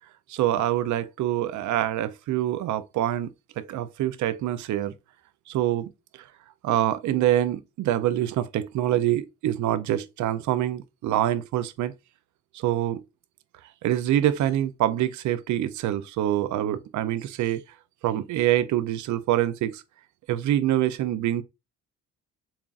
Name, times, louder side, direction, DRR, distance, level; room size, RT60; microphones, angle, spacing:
voice 1, 0.3-3.3 3.6-4.9 5.5-5.9 6.2-6.3 6.6-11.9 12.5-13.0 13.8-17.6 18.0-19.8 20.3-21.4, right 12 dB, 75° right, 0.5 m, -25 dB
7.1 x 2.4 x 2.4 m
cardioid pair, 90°, 30 cm